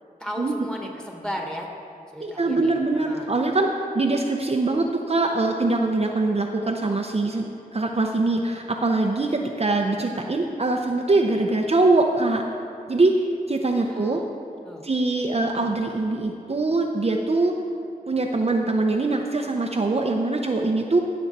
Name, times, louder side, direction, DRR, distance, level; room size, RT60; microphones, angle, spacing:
voice 1, 0.2-1.7 2.1-3.3 13.8-14.3 14.6-14.8, equal, 5° left, 0 dB, 1.5 m, -35 dB
voice 2, 2.2-3.7 3.9-12.4 12.9-13.1 13.5-14.2 14.8-17.5 18.1-21.0, right 2 dB, 40° right, 2 dB, 0.6 m, -23 dB
15.5 x 6.3 x 4.1 m, 2.4 s
wide cardioid pair, 70°, 15 cm